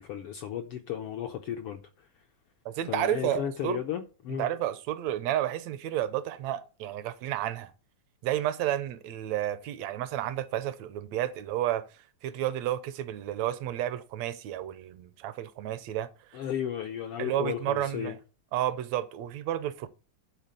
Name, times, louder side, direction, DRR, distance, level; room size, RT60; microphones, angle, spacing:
voice 1, 0.0-1.8 2.9-4.5 16.3-18.1, left 9 dB, 80° left, 1.2 m, -34 dB
voice 2, 2.6-3.8 4.4-7.7 8.2-16.4 17.2-18.2 18.5-19.9, right 12 dB, 75° right, 1.8 m, -31 dB
11.5 x 4.1 x 6.6 m
omnidirectional pair, 3.5 m